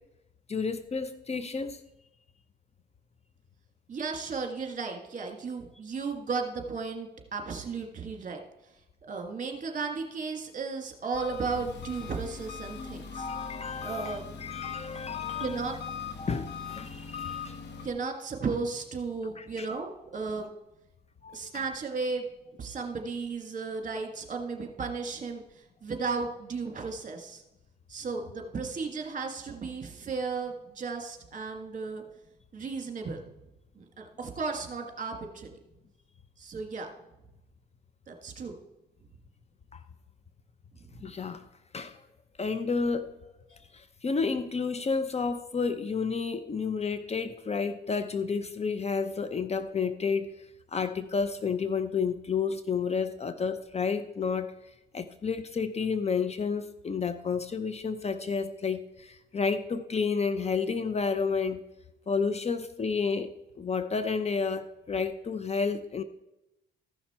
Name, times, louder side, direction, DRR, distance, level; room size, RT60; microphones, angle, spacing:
voice 1, 0.5-1.8 12.7-15.7 16.2-17.6 17.9-18.1 19.4-19.7 21.2-21.6 39.7-39.8 41.0-41.4 41.7-42.0 42.4-43.1 43.5-50.3 50.7-54.5 54.9-61.6 62.1-66.0, left 5 dB, 35° left, 11 dB, 0.7 m, -31 dB
voice 2, 3.9-8.4 9.1-13.3 13.8-14.2 15.0-15.1 15.4-15.8 17.8-20.5 21.3-22.3 22.6-27.4 27.9-32.0 32.5-33.2 33.8-35.5 36.4-36.9 38.1-38.5 40.9-41.0, right 4 dB, 40° right, 4 dB, 1.9 m, -34 dB
Engine, 11.1-17.9, left 6 dB, 60° left, 1.3 m, -40 dB
14.5 x 5.8 x 4.3 m, 0.91 s
cardioid pair, 90°, 20 cm